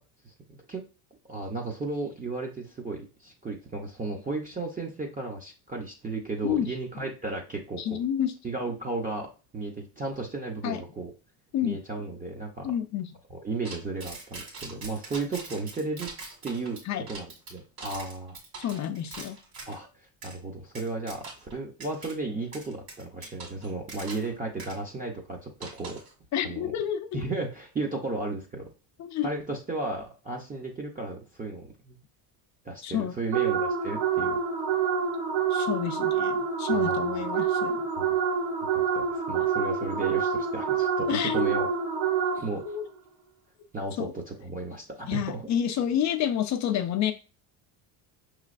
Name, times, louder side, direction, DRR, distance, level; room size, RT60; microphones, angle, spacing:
voice 1, 1.3-8.0 8.4-9.3 9.5-11.1 11.6-12.7 13.3-16.1 16.4-16.8 17.1-18.4 19.7-26.0 26.4-26.7 27.1-28.7 29.2-32.0 32.6-34.4 36.7-37.2 38.0-38.2 38.7-41.7 42.3-42.6 43.7-45.5, right 3 dB, 20° right, 0 dB, 0.6 m, -34 dB
voice 2, 7.8-8.3 10.6-10.8 11.5-11.8 12.6-13.1 16.9-17.0 18.6-19.4 26.3-27.2 29.0-29.3 32.8-33.1 35.5-37.9 41.1-41.7 42.6-42.9 44.0-44.1 45.1-47.1, left 10 dB, 40° left, 8 dB, 0.4 m, -29 dB
sound 1, 13.6-19.8 20.2-20.4 20.7-21.5 21.8-22.1 22.5-24.3 24.6-24.7 25.6-26.1, right 3 dB, 50° right, 1.9 m, -42 dB
sound 2, 33.3-42.7, right 6 dB, 65° right, 1.6 m, -27 dB
5.5 x 3.1 x 2.5 m, 0.33 s
cardioid pair, 125°, 47 cm